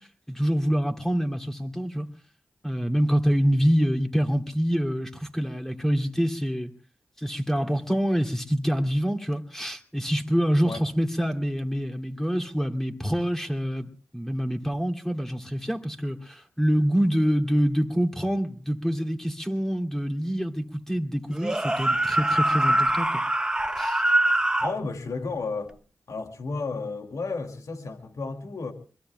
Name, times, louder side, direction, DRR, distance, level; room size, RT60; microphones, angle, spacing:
voice 1, 0.3-2.1 2.6-6.7 7.2-23.2 23.8-24.0, equal, 5° left, 2.6 m, -26 dB
sound 1, 21.3-24.8, right 1 dB, 15° right, 1.3 m, -23 dB
voice 2, 24.6-25.7 26.1-28.7, left 4 dB, 70° left, 2.3 m, -32 dB
25.0 x 22.0 x 2.2 m
cardioid pair, 50°, 6 cm